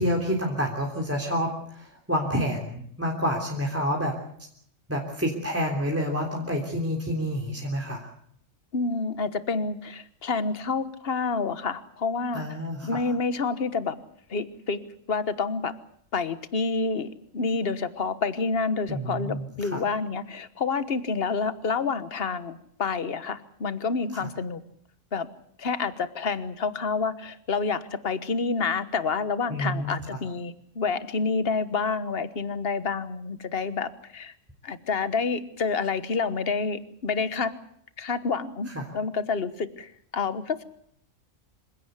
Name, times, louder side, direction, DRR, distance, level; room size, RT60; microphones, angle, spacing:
voice 1, 0.0-4.2 4.9-8.1 12.3-13.0 18.9-19.8 29.5-30.2 38.7-38.8, equal, 10° right, -1 dB, 3.4 m, -28 dB
voice 2, 8.7-12.5 12.8-14.0 14.3-14.8 15.1-15.7 16.1-24.6 25.1-25.3 25.6-34.3 34.6-37.5 38.0-40.6, left 4 dB, 50° left, 13 dB, 1.5 m, -28 dB
26.5 x 17.0 x 8.2 m, 0.68 s
omnidirectional pair, 1.4 m